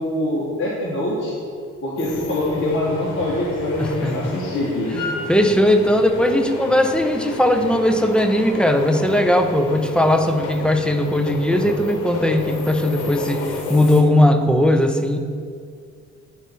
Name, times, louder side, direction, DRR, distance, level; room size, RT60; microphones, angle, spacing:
voice 1, 0.0-1.3 1.8-4.9, left 1 dB, 40° left, -6 dB, 1.5 m, -24 dB
sound 1, 2.0-14.0, left 3 dB, 85° left, 1.1 m, -31 dB
voice 2, 3.8-4.4 4.9-15.2, left 1 dB, 5° left, 6 dB, 0.5 m, -18 dB
9.1 x 4.0 x 4.6 m, 2.1 s
cardioid pair, 90°, 30 cm